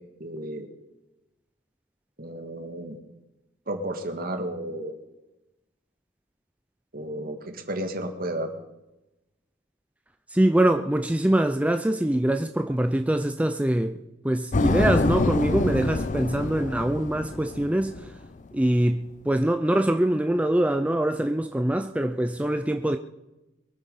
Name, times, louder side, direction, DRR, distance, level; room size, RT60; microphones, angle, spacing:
voice 1, 0.2-0.7 2.2-3.0 3.7-4.9 6.9-8.5, right 1 dB, 50° right, 1.9 m, -32 dB
voice 2, 10.3-14.0 14.2-18.1 18.5-23.0, right 1 dB, 5° right, 0.5 m, -24 dB
sound 1, 14.5-18.3, left 3 dB, 40° left, 0.6 m, -26 dB
23.0 x 8.8 x 5.5 m
head